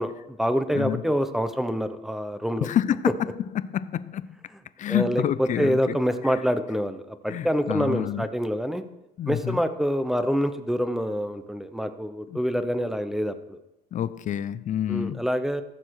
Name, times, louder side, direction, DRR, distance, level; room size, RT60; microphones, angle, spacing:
voice 1, 0.0-2.7 4.9-8.8 9.3-13.6 14.9-15.6, equal, ahead, 0.9 m, -26 dB
voice 2, 2.6-3.1 3.5-4.4 4.8-6.0 7.3-8.3 9.2-9.6 12.3-12.4 13.9-15.3, left 10 dB, 50° left, 0.5 m, -28 dB
14.0 x 6.9 x 4.8 m
cardioid pair, 110°, 17 cm